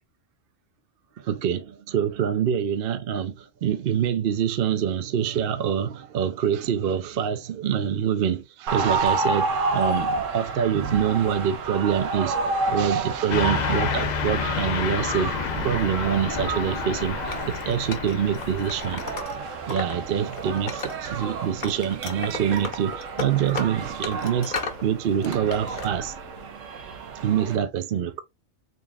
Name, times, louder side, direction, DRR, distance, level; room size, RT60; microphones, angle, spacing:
voice 1, 1.2-12.4 12.7-15.4 15.6-19.0 19.7-24.6 24.8-26.1 27.2-28.2, right 8 dB, 60° right, 0.7 m, -25 dB
sound 1, 8.7-27.6, right 4 dB, 75° right, 1.1 m, -30 dB
Car passing by / Truck, 13.3-19.2, left 8 dB, 75° left, 0.4 m, -30 dB
Wood, 17.3-20.0 20.3-21.3 21.6-24.8 25.2-25.9, left 3 dB, 45° left, 0.8 m, -35 dB
3.8 x 3.6 x 2.3 m
omnidirectional pair, 1.3 m